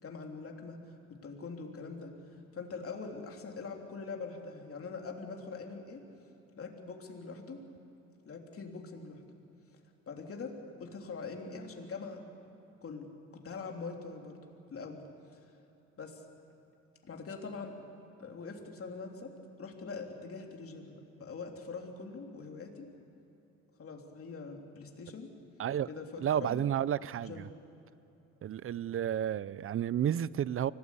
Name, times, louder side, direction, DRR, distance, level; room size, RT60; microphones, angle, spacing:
voice 1, 0.0-0.8 1.1-2.2 2.5-6.0 6.6-7.6 8.2-9.2 10.1-12.2 12.8-14.4 14.7-15.0 15.3-15.4 16.0-16.2 17.0-17.7 18.2-22.9 23.8-25.3 25.9-26.7 27.2-27.5, left 4 dB, 50° left, 2 dB, 3.2 m, -43 dB
voice 2, 26.2-27.5 28.4-30.7, right 10 dB, 45° right, 20 dB, 0.5 m, -31 dB
24.5 x 18.0 x 8.4 m, 2.9 s
cardioid pair, 90°, 30 cm